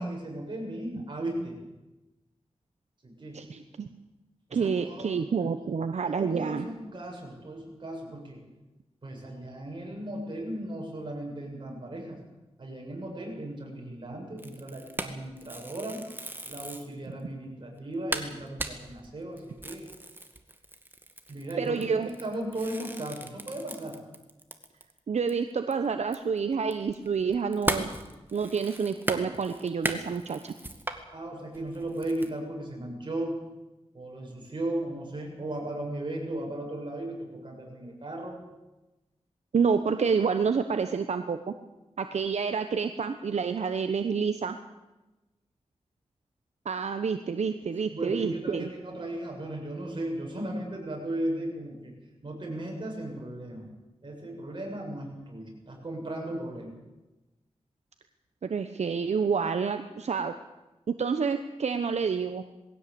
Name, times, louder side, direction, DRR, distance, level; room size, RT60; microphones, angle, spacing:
voice 1, 0.0-1.6 3.0-3.4 4.5-5.1 5.6-5.7 6.1-8.4 9.0-12.2 12.6-16.0 16.5-19.9 21.3-24.0 31.1-33.4 33.9-38.4 47.9-51.9 52.2-53.7 54.0-56.8, right 1 dB, 45° right, 0 dB, 7.7 m, -36 dB
voice 2, 3.3-3.9 4.5-6.7 21.6-22.1 25.1-27.9 28.3-30.5 39.5-41.5 42.0-44.6 46.6-48.7 58.4-60.3 60.9-62.4, right 5 dB, 75° right, 8 dB, 1.0 m, -28 dB
sound 1, 14.4-16.9 17.4-17.5 17.8-17.9 18.1-25.0 25.3-25.4 25.7-31.0 31.5-32.3, right 1 dB, 20° right, 2.1 m, -37 dB
20.5 x 16.5 x 8.6 m, 1.1 s
wide cardioid pair, 85°, 12 cm